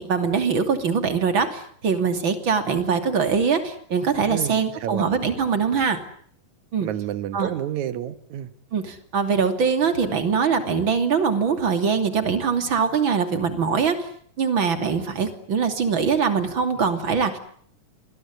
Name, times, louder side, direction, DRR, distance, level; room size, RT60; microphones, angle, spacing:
voice 1, 0.0-6.0 6.7-6.9 7.3-7.5 8.7-14.1 14.4-17.4, right 6 dB, 35° right, 8 dB, 3.3 m, -22 dB
voice 2, 4.3-5.1 6.8-8.5, right 11 dB, 65° right, 12 dB, 2.6 m, -29 dB
28.0 x 21.0 x 9.7 m, 0.62 s
omnidirectional pair, 3.8 m